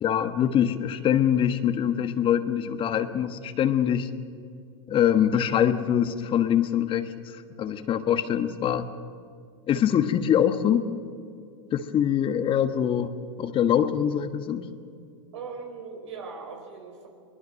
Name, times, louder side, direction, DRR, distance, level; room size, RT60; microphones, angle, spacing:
voice 1, 0.0-4.1 4.9-8.9 9.7-10.9 11.7-13.1 13.4-14.7, left 9 dB, 35° left, 9 dB, 1.3 m, -24 dB
voice 2, 15.3-17.1, right 5 dB, 80° right, 3 dB, 5.3 m, -39 dB
23.0 x 21.0 x 6.5 m, 2.3 s
hypercardioid pair, 105°, 15 cm